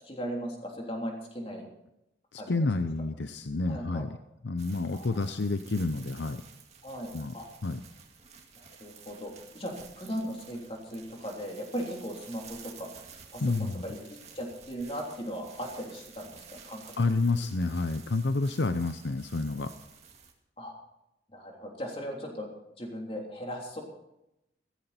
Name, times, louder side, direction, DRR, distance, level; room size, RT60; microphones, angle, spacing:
voice 1, 0.1-1.7 2.4-2.7 3.7-4.0 4.9-5.2 6.8-7.5 8.6-12.9 13.3-16.9 20.6-20.7 21.3-22.5 22.8-23.8, equal, 30° left, 0 dB, 3.4 m, -38 dB
voice 2, 2.3-4.2 4.4-6.4 7.1-7.3 7.6-7.8 13.4-13.8 17.0-19.7, left 3 dB, 80° left, 9 dB, 0.7 m, -29 dB
sound 1, 4.6-20.3, right 6 dB, 35° right, 2.2 m, -52 dB
15.5 x 15.0 x 4.3 m, 0.88 s
head